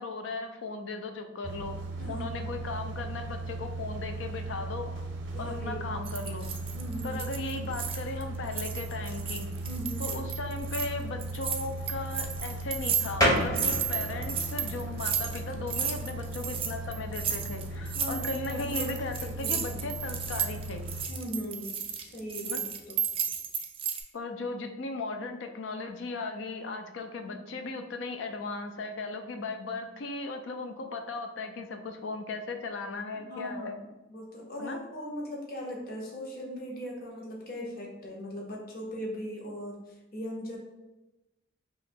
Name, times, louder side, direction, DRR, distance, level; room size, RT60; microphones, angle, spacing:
voice 1, 0.0-1.8 2.1-4.9 5.4-6.5 7.0-9.5 10.0-20.8 22.4-22.6 24.1-33.8 34.6-34.8, left 3 dB, 80° left, 6 dB, 0.4 m, -37 dB
sound 1, 1.4-21.1, right 2 dB, 75° right, 0.5 m, -38 dB
voice 2, 2.0-2.6 5.3-6.0 6.7-7.2 9.6-10.1 17.9-19.8 21.1-23.0 27.1-27.6 33.1-33.8 34.1-40.6, equal, 50° left, -2 dB, 0.9 m, -39 dB
sound 2, 6.0-8.2 8.5-10.9 11.2-24.0, right 8 dB, 30° right, 0.3 m, -33 dB
sound 3, 13.2-23.4, equal, 20° left, 0.7 m, -36 dB
2.9 x 2.5 x 4.2 m, 1.0 s
head